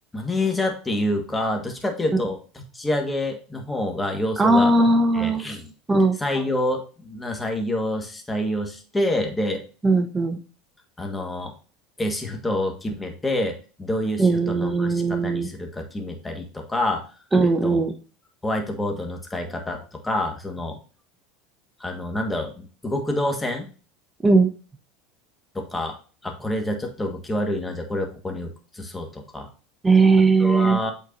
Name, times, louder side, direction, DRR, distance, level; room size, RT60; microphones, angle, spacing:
voice 1, 0.1-2.4 2.7-4.9 5.1-5.7 6.2-9.6 11.0-11.5 12.0-13.5 13.8-17.0 17.4-17.8 18.4-20.8 21.8-23.7 25.5-25.9 26.2-29.5 30.4-30.9, left 1 dB, 10° left, 3 dB, 1.5 m, -27 dB
voice 2, 4.4-5.4 5.9-6.2 9.8-10.4 14.2-15.5 17.3-17.9 24.2-24.5 29.8-30.8, right 3 dB, 15° right, 7 dB, 0.9 m, -18 dB
8.2 x 4.5 x 2.6 m, 0.36 s
supercardioid pair, 105°, 0 cm